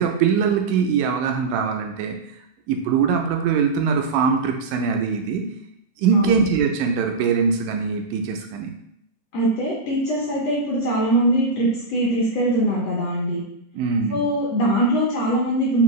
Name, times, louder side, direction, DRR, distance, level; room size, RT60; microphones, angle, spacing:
voice 1, 0.0-2.2 2.7-5.4 6.0-8.8 13.8-14.2, right 6 dB, 90° right, 3 dB, 2.2 m, -22 dB
voice 2, 6.1-6.5 9.3-13.4 14.1-15.8, right 1 dB, 70° left, -5 dB, 1.6 m, -22 dB
5.4 x 2.5 x 3.0 m, 0.76 s
omnidirectional pair, 3.7 m